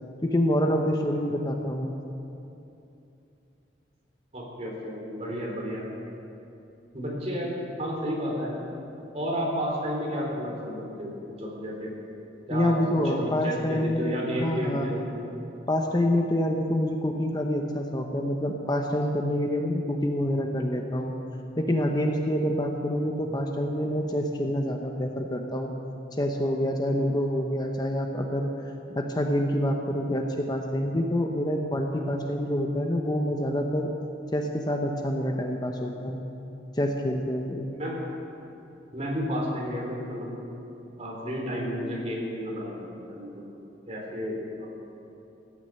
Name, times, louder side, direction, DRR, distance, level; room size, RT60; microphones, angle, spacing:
voice 1, 0.2-1.9 12.5-14.9 15.7-21.1 21.6-25.7 26.2-28.5 28.9-33.9 34.3-36.2 36.7-37.7, equal, 20° left, 2 dB, 0.8 m, -27 dB
voice 2, 4.3-5.8 6.9-8.5 9.1-11.9 12.5-15.0 37.8-38.0 38.9-40.3 41.0-43.4 43.9-44.7, equal, 35° right, -2 dB, 3.7 m, -32 dB
17.5 x 9.7 x 7.6 m, 2.8 s
head